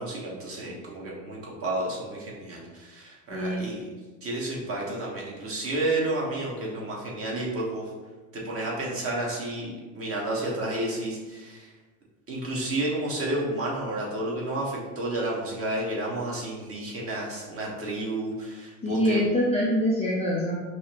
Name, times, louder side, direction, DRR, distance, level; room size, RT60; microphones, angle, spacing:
voice 1, 0.0-3.9 4.2-7.9 8.3-11.7 12.3-19.2, right 1 dB, 30° right, -3 dB, 1.1 m, -31 dB
voice 2, 3.3-3.7 18.8-20.6, equal, 15° left, -5 dB, 0.4 m, -25 dB
5.5 x 2.1 x 2.8 m, 1.3 s
supercardioid pair, 115°, 46 cm